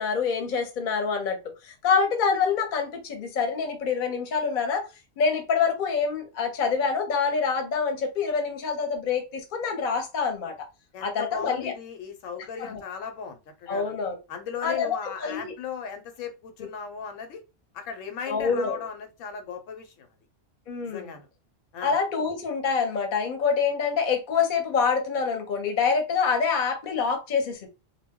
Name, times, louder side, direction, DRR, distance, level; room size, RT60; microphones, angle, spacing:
voice 1, 0.0-1.4 1.6-4.9 5.2-10.5 11.0-11.7 12.6-12.8 13.7-14.2 14.6-15.5 18.3-18.8 20.7-21.2 21.8-27.7, left 5 dB, 45° left, 0.7 m, -26 dB
voice 2, 10.9-13.9 14.3-17.4 17.7-20.1 20.8-21.3 21.7-21.9, left 6 dB, 90° left, 1.0 m, -37 dB
2.2 x 2.1 x 3.5 m
omnidirectional pair, 1.3 m